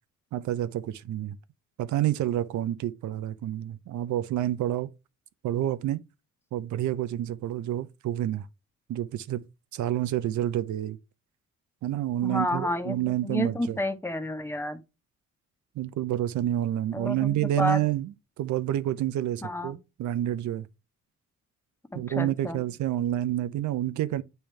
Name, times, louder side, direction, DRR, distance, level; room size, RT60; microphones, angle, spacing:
voice 1, 0.3-1.4 1.8-4.9 5.4-6.0 6.5-8.4 8.9-9.4 9.7-11.0 11.8-13.8 15.8-18.1 18.4-20.7 21.9-24.2, right 12 dB, 75° right, 0.7 m, -28 dB
voice 2, 12.2-14.8 16.9-17.8 19.4-19.8 21.9-22.6, left 1 dB, 10° left, 1.1 m, -30 dB
8.8 x 3.4 x 3.3 m
cardioid pair, 90°, 30 cm